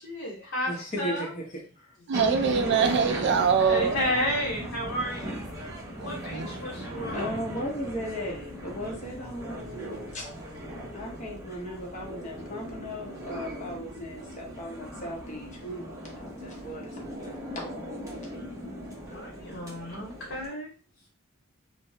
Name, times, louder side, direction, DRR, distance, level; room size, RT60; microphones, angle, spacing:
voice 1, 0.0-1.3 3.7-5.4 6.0-7.3 19.1-20.7, equal, 60° left, -6 dB, 1.1 m, -32 dB
voice 2, 0.7-1.9 7.1-10.3 10.9-17.6, equal, 35° left, -1 dB, 0.8 m, -37 dB
sound 1, 2.1-20.5, equal, 15° right, 0.6 m, -38 dB
voice 3, 2.1-4.0 6.0-6.5 19.2-19.3, right 6 dB, 55° right, 6 dB, 0.3 m, -24 dB
3.3 x 2.0 x 2.7 m, 0.37 s
head